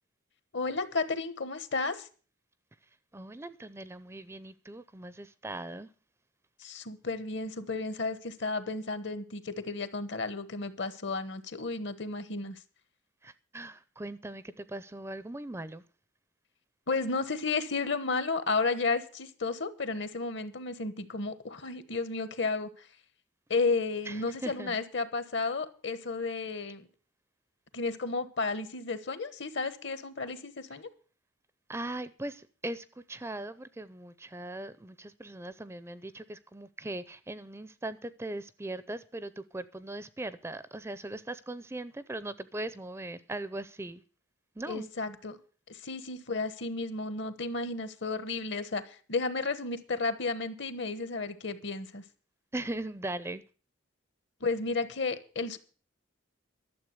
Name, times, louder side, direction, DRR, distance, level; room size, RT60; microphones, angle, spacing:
voice 1, 0.5-2.1 6.6-12.6 16.9-22.9 23.5-26.9 27.7-30.9 44.7-45.4 45.7-52.0 54.4-55.6, left 3 dB, 60° left, 1.2 m, -33 dB
voice 2, 3.1-5.9 13.2-15.8 24.1-24.8 31.7-44.0 44.6-44.9 52.5-53.4, right 2 dB, 15° right, 0.5 m, -39 dB
12.0 x 7.3 x 7.8 m
head